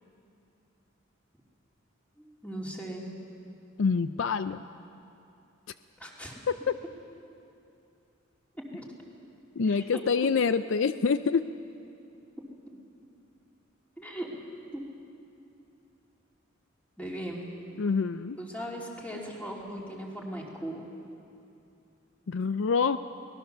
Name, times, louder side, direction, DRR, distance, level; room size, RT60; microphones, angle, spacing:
voice 1, 2.2-3.0 6.0-6.4 8.7-8.9 9.7-10.0 14.0-14.3 14.7-14.8 17.0-17.5 18.4-20.8, right 1 dB, 5° left, -2 dB, 2.9 m, -38 dB
voice 2, 3.8-4.6 6.5-6.8 9.6-11.5 17.8-18.4 22.3-23.0, left 5 dB, 65° left, 12 dB, 0.5 m, -26 dB
24.0 x 19.0 x 6.8 m, 2.7 s
head